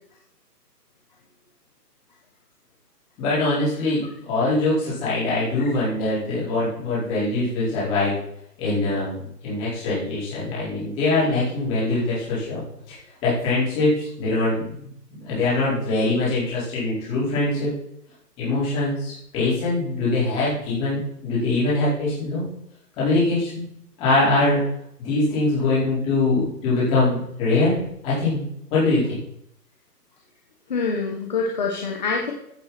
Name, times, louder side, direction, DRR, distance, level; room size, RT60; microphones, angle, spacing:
voice 1, 3.2-8.2 8.6-9.1 9.4-12.9 13.2-14.9 15.2-17.7 18.4-22.5 23.0-23.6 24.0-24.7 25.0-28.4 28.7-29.2, left 2 dB, 10° left, -9 dB, 4.7 m, -23 dB
voice 2, 30.7-32.3, left 4 dB, 25° left, 0 dB, 1.5 m, -25 dB
15.5 x 7.5 x 4.3 m, 0.74 s
hypercardioid pair, 175°, 49 cm